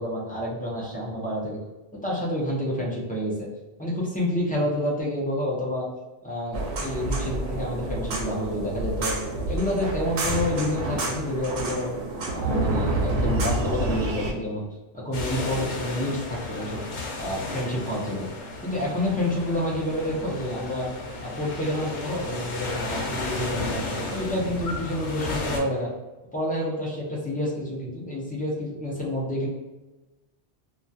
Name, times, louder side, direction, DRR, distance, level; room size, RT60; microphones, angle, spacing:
voice 1, 0.0-1.6 2.0-3.5 3.8-5.9 6.2-9.1 9.5-11.9 12.3-14.7 15.0-16.8 17.2-18.3 18.6-20.9 21.2-25.9 26.3-29.5, left 1 dB, 15° left, -5 dB, 0.3 m, -29 dB
sound 1, 6.5-14.3, right 2 dB, 80° right, 0.9 m, -28 dB
sound 2, 15.1-25.6, left 2 dB, 85° left, 0.9 m, -33 dB
2.2 x 2.2 x 2.6 m, 1.1 s
omnidirectional pair, 1.1 m